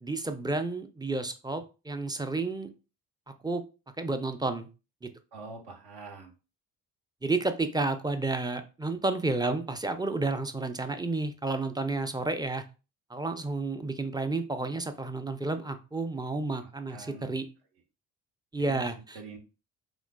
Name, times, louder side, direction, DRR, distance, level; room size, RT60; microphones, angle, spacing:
voice 1, 0.0-2.7 3.3-3.6 4.0-4.7 5.0-5.1 7.2-12.6 13.1-17.5 18.5-19.2, right 3 dB, 10° right, 8 dB, 0.5 m, -31 dB
voice 2, 5.3-6.3 16.6-17.3 18.7-18.9 19.1-19.4, right 2 dB, 70° right, 2 dB, 1.1 m, -44 dB
3.8 x 2.8 x 2.2 m, 0.32 s
supercardioid pair, 55°, 42 cm